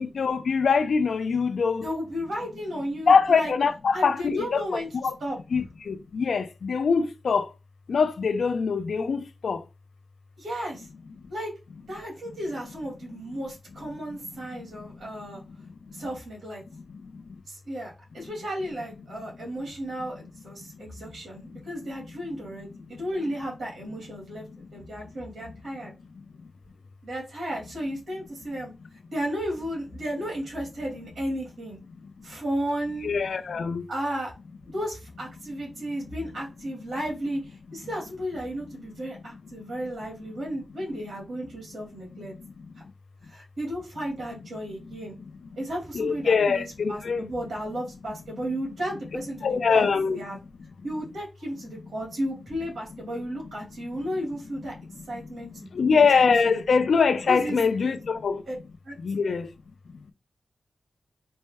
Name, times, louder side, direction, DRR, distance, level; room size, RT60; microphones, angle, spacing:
voice 1, 0.0-1.9 3.1-5.1 5.5-7.5 7.9-9.6 33.0-33.9 45.9-47.2 49.4-50.2 55.7-58.4 59.0-59.5, left 5 dB, 75° left, 0.5 m, -23 dB
voice 2, 1.8-3.5 3.9-5.6 10.4-10.9 11.3-11.5 11.9-15.4 15.9-16.6 17.5-25.9 27.0-28.7 29.1-31.8 32.2-33.1 33.9-34.3 34.7-42.4 43.3-45.2 45.6-49.9 50.1-50.4 50.8-54.7 55.1-56.0 56.4-56.6 57.3-57.9 58.5-58.6 58.8-59.0 59.3-59.4, equal, 75° right, 1.9 m, -34 dB
4.2 x 2.1 x 3.5 m
wide cardioid pair, 90°, 0 cm